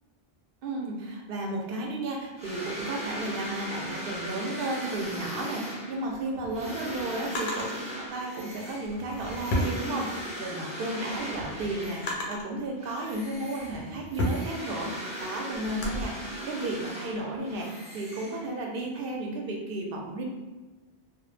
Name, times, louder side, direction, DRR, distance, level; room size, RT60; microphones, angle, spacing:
voice 1, 0.6-20.2, right 2 dB, 65° right, 0 dB, 0.7 m, -33 dB
sound 1, 2.4-12.4 12.8-18.8, equal, 10° right, 0.4 m, -39 dB
Drawer open or close, 6.1-7.8 8.8-10.4 10.9-12.6 13.2-16.0, left 1 dB, 55° left, 0.6 m, -34 dB
2.2 x 2.0 x 3.1 m, 1.2 s
omnidirectional pair, 1.1 m